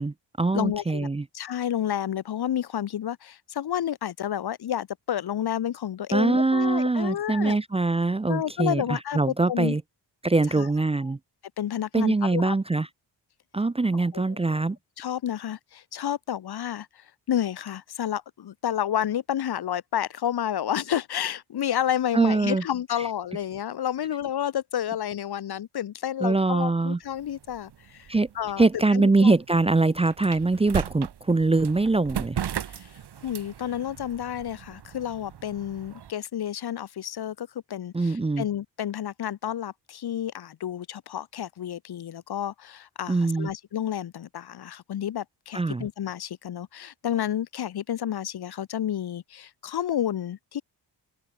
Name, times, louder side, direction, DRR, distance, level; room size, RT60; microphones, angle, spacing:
voice 1, 0.0-1.3 6.1-9.8 10.2-11.2 11.9-12.9 13.5-14.8 22.1-22.6 23.0-23.1 26.2-27.0 28.1-28.3 28.6-32.4 37.9-38.5 43.1-43.5 45.5-45.9, right 3 dB, 15° right, 0.7 m, -23 dB
voice 2, 0.5-1.1 1.3-7.6 8.3-9.8 10.6-10.7 11.6-12.5 13.9-14.2 14.5-14.6 15.0-28.1 28.3-28.6 28.9-29.3 32.7-32.9 33.2-50.6, left 10 dB, 60° left, 1.3 m, -30 dB
sound 1, 27.0-36.1, right 9 dB, 65° right, 4.1 m, -38 dB
open air
wide cardioid pair, 140°, 43 cm